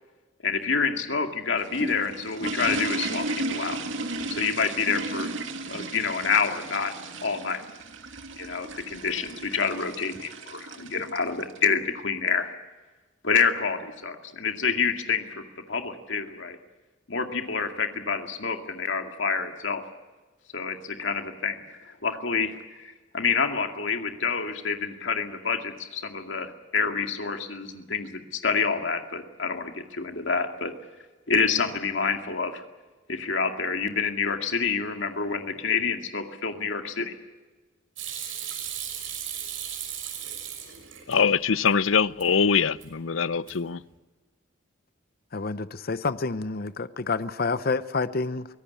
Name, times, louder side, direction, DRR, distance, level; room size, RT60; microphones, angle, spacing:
voice 1, 0.4-3.8 4.3-5.3 5.7-6.9 7.2-7.6 8.4-12.5 13.2-16.6 17.1-19.8 20.5-30.7 31.3-32.6 33.1-37.1, left 5 dB, 70° left, 2.2 m, -28 dB
sound 1, 1.3-11.7, right 2 dB, 70° right, 2.4 m, -35 dB
Hands / Sink (filling or washing), 38.0-41.1 41.5-42.3 42.6-43.1 43.3-43.8, right 9 dB, 90° right, 6.1 m, -36 dB
voice 2, 41.1-43.8, left 6 dB, 90° left, 0.7 m, -23 dB
voice 3, 45.3-48.5, left 4 dB, 50° left, 0.7 m, -28 dB
24.0 x 17.5 x 8.5 m
head